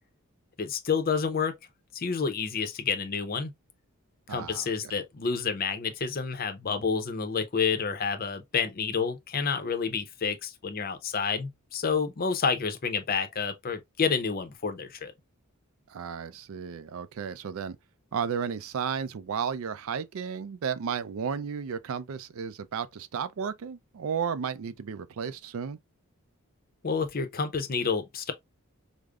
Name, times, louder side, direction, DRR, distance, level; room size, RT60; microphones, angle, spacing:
voice 1, 0.6-1.5 1.9-3.5 4.3-15.1 26.8-28.3, left 5 dB, 40° left, 0.6 m, -29 dB
voice 2, 4.3-4.9 15.9-17.8 18.1-25.8, right 7 dB, 70° right, 0.4 m, -33 dB
5.0 x 2.0 x 2.3 m
head